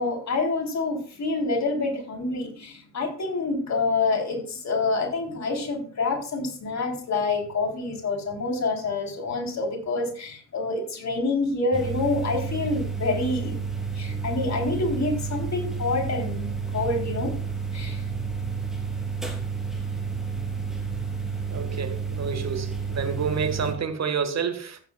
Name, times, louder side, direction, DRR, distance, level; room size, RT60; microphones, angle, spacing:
voice 1, 0.0-13.5 13.9-17.3 17.7-18.0, left 3 dB, 45° left, 3.5 m, -27 dB
sound 1, 11.7-23.7, right 5 dB, ahead, 3.5 m, -31 dB
voice 2, 21.5-24.8, right 6 dB, 45° right, 1.7 m, -29 dB
14.5 x 7.5 x 2.4 m
hypercardioid pair, 45°, 37 cm